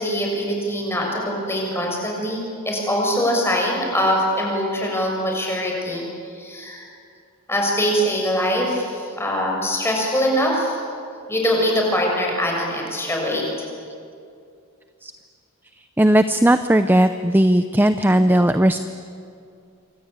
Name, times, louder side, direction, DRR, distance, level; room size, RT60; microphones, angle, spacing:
voice 1, 0.0-6.1 6.3-6.9 7.5-10.8 11.3-13.4, equal, 10° left, -1 dB, 6.8 m, -23 dB
voice 2, 16.0-18.8, right 1 dB, 10° right, 10 dB, 0.6 m, -17 dB
28.0 x 24.0 x 8.9 m, 2.4 s
head